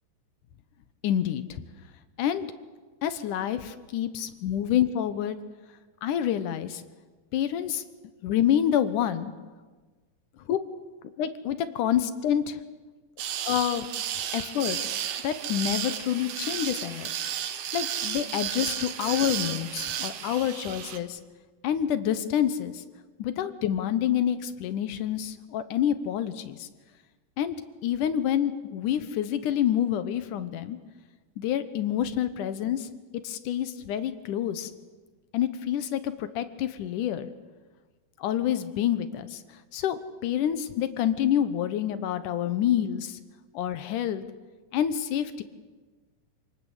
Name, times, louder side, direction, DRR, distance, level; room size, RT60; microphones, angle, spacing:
voice 1, 1.0-1.6 2.2-2.5 3.0-5.4 6.0-6.8 7.3-7.8 8.2-9.3 10.5-10.6 11.2-12.6 13.5-13.9 14.3-14.8 15.2-17.1 17.7-21.2 21.6-22.8 23.2-26.7 27.4-27.6 27.8-30.8 31.4-32.9 33.2-34.7 35.3-37.3 38.2-39.4 39.7-43.2 43.5-44.2 44.7-45.4, left 10 dB, 70° left, 12 dB, 2.4 m, -27 dB
sound 1, 13.2-21.0, right 9 dB, 75° right, 3.1 m, -33 dB
27.5 x 19.5 x 8.2 m, 1.3 s
omnidirectional pair, 4.3 m